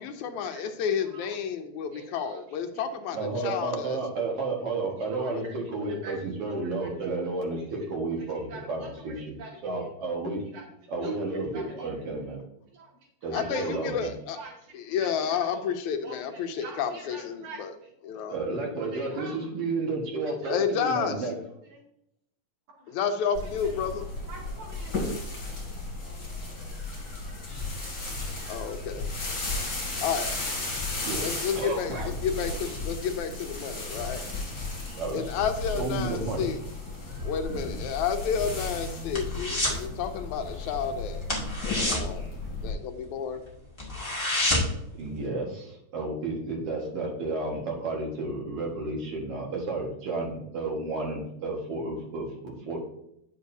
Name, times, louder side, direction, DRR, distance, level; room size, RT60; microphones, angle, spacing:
voice 1, 0.0-3.2 3.4-4.0 5.3-5.4 13.3-14.4 14.7-17.7 18.0-18.4 20.5-21.3 22.9-24.1 28.5-29.1 30.0-30.3 31.2-34.2 35.1-36.6 37.2-41.2 41.6-42.3 42.6-43.4, left 7 dB, 80° left, 7 dB, 2.1 m, -31 dB
voice 2, 1.0-1.4 1.9-2.6 4.8-6.2 6.5-7.2 7.5-7.7 8.3-9.1 9.4-9.9 10.5-10.6 11.0-12.4 12.7-13.8 14.3-15.7 16.0-17.9 18.8-19.4 20.2-20.6 21.6-21.8 22.8-23.0 23.4-23.7 24.3-25.0 26.4-26.8, right 2 dB, 85° right, -3 dB, 3.5 m, -46 dB
voice 3, 3.1-9.4 9.6-10.4 10.9-12.4 13.2-14.1 18.3-21.4 31.0-31.3 31.6-32.1 34.9-35.3 35.7-36.5 37.5-37.8 44.9-52.8, right 3 dB, 55° right, -1 dB, 2.4 m, -32 dB
sound 1, 23.4-42.7, left 2 dB, 35° left, 3.2 m, -34 dB
sound 2, 38.4-39.9 40.1-40.4 40.7-40.8 41.2-43.1 43.4-43.5 43.8-44.9 45.2-45.3, left 1 dB, 15° left, 1.4 m, -28 dB
9.2 x 7.1 x 2.7 m, 0.78 s
omnidirectional pair, 3.3 m